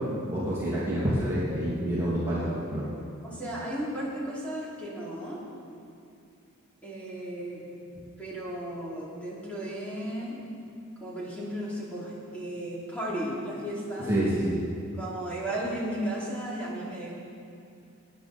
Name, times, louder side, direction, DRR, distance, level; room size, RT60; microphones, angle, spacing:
voice 1, 0.3-2.9 14.0-14.6, right 1 dB, 15° right, -10 dB, 2.7 m, -27 dB
voice 2, 3.2-5.4 6.8-7.7 8.2-10.4 11.0-14.2 15.0-17.1, right 1 dB, 5° left, -7 dB, 3.3 m, -34 dB
22.0 x 9.7 x 4.4 m, 2.5 s
head